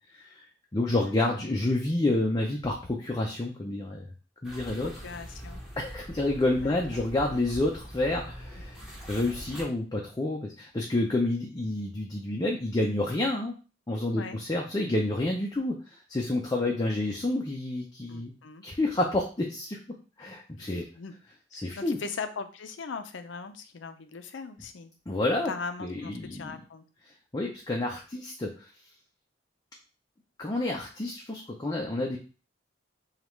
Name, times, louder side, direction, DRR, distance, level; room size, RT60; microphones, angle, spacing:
voice 1, 0.7-4.1 4.4-4.9 5.8-8.8 9.1-13.5 13.9-15.8 16.1-18.3 18.6-19.8 20.2-20.8 21.5-22.0 25.1-25.5 25.8-26.6 27.3-28.5 30.4-32.2, left 2 dB, 20° left, 0 dB, 0.5 m, -29 dB
sound 1, 4.4-9.6, equal, ahead, 1.3 m, -43 dB
voice 2, 4.8-5.6 6.6-7.0 14.1-14.4 18.1-18.6 20.6-21.1 21.5-24.9 25.5-26.8, left 4 dB, 85° left, 9 dB, 0.5 m, -40 dB
5.2 x 2.4 x 3.1 m, 0.35 s
head